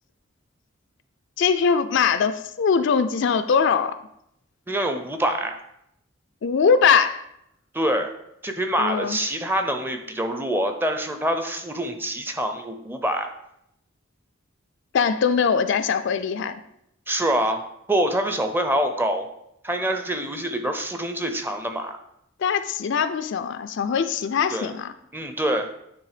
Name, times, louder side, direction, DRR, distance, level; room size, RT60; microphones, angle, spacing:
voice 1, 1.4-3.9 6.4-7.2 8.8-9.2 14.9-16.6 22.4-24.9, left 6 dB, 60° left, 11 dB, 0.4 m, -21 dB
voice 2, 4.7-5.6 7.7-8.1 8.4-13.3 17.1-17.6 17.9-19.3 19.6-22.0 24.5-24.7 25.1-25.7, right 1 dB, 10° right, 6 dB, 0.6 m, -25 dB
9.4 x 3.4 x 4.9 m, 0.78 s
head